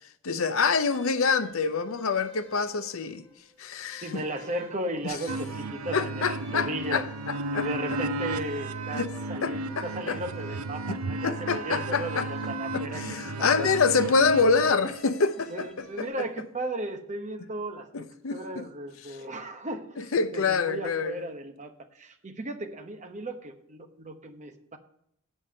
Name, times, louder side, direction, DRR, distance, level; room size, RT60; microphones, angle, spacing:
voice 1, 0.2-3.2 3.6-4.2 5.0-5.2 5.9-7.7 8.9-9.1 9.4-10.2 11.2-12.3 12.7-16.2 17.9-18.7 20.0-21.3, left 4 dB, 70° left, 0.6 m, -26 dB
sound 1, 0.9-16.1, left 1 dB, 5° left, 3.3 m, -53 dB
voice 2, 4.0-7.1 7.5-13.7 15.5-24.8, right 1 dB, 35° right, 1.0 m, -36 dB
sound 2, 5.3-15.0, right 2 dB, 80° right, 0.5 m, -34 dB
8.6 x 5.5 x 7.5 m
head